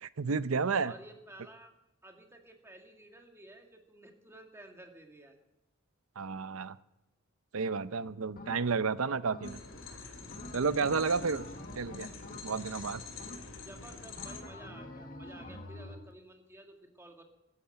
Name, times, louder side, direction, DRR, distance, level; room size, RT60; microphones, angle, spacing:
voice 1, 0.0-0.9 6.2-6.8 7.5-9.6 10.5-11.4 11.8-12.1 12.4-13.0, right 5 dB, 85° right, 15 dB, 0.7 m, -31 dB
voice 2, 0.8-1.7 2.0-5.4 13.6-17.2, right 1 dB, 15° right, 3 dB, 2.0 m, -53 dB
sound 1, 8.4-8.9 9.3-9.9 10.3-12.8 13.2-13.7 14.2-16.1, left 1 dB, 45° left, 1.5 m, -47 dB
sound 2, 9.4-14.4, left 4 dB, 65° left, 2.4 m, -46 dB
14.5 x 9.7 x 8.7 m, 0.87 s
head